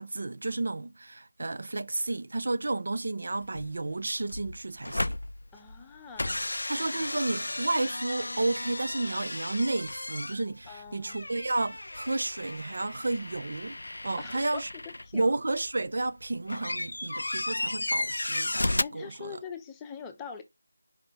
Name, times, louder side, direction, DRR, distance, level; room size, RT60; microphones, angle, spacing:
voice 1, 0.0-5.2 6.7-13.8 14.0-14.7 15.1-19.4, right 2 dB, 55° right, 0.5 m, -32 dB
sound 1, 3.4-3.9 4.2-5.8 6.2-15.2 15.6-18.8, left 2 dB, 70° left, 0.3 m, -34 dB
voice 2, 5.5-6.4 10.7-11.2 14.2-14.6 15.0-15.3 18.8-20.4, left 6 dB, 10° left, 0.8 m, -42 dB
5.2 x 5.0 x 4.3 m
figure-of-eight pair, 165°, 0 cm